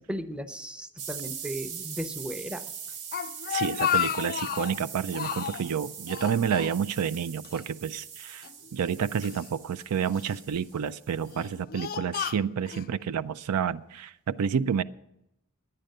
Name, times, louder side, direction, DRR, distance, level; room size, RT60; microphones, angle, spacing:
voice 1, 0.1-2.6, equal, 5° right, 9 dB, 0.6 m, -36 dB
sound 1, 1.0-11.6, right 7 dB, 70° right, 0.9 m, -42 dB
Speech, 2.9-4.8 5.1-5.7 6.1-7.2 7.4-7.6 8.4-9.4 10.1-10.6 11.2-12.9, left 10 dB, 40° left, 0.3 m, -32 dB
voice 2, 3.5-8.5 8.7-14.8, right 7 dB, 90° right, 16 dB, 0.4 m, -29 dB
10.5 x 9.8 x 6.5 m, 0.85 s
head